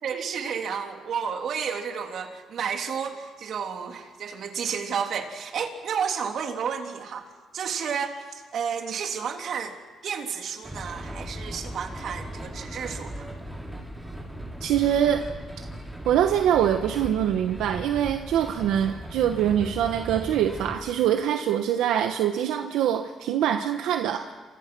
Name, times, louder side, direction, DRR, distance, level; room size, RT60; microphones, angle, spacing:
voice 1, 0.0-13.3, right 7 dB, 65° right, 4 dB, 3.2 m, -31 dB
sound 1, 10.6-20.7, equal, 5° right, 6.3 m, -38 dB
voice 2, 14.6-15.3 16.0-24.3, right 10 dB, 90° right, 6 dB, 1.2 m, -24 dB
28.5 x 26.0 x 6.2 m, 1.5 s
cardioid pair, 90°, 0 cm